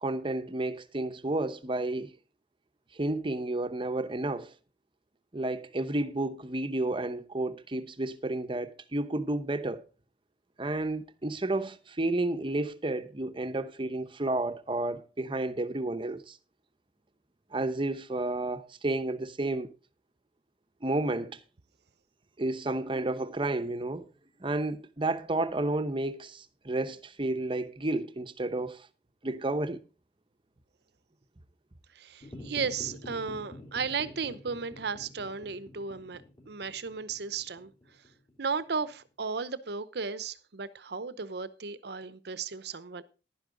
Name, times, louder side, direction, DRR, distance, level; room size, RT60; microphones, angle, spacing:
voice 1, 0.0-2.1 2.9-4.5 5.3-9.8 10.6-16.4 17.5-19.7 20.8-21.4 22.4-24.1 24.4-28.9 29.2-29.8, right 2 dB, 30° right, 0.8 m, -31 dB
voice 2, 31.9-37.7 38.4-43.0, right 5 dB, 65° right, 0.8 m, -35 dB
sound 1, 32.2-38.8, left 1 dB, 30° left, 3.4 m, -48 dB
11.5 x 10.0 x 3.8 m
head